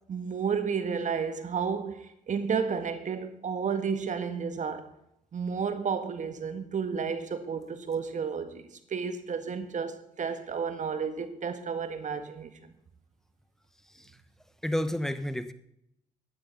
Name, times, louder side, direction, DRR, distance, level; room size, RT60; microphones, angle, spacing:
voice 1, 0.1-4.9 5.3-12.5, right 6 dB, 45° right, 1.7 m, -32 dB
voice 2, 13.9-14.2 14.6-15.5, left 1 dB, 5° left, 1.2 m, -31 dB
15.0 x 9.6 x 4.1 m
hypercardioid pair, 50°, 17 cm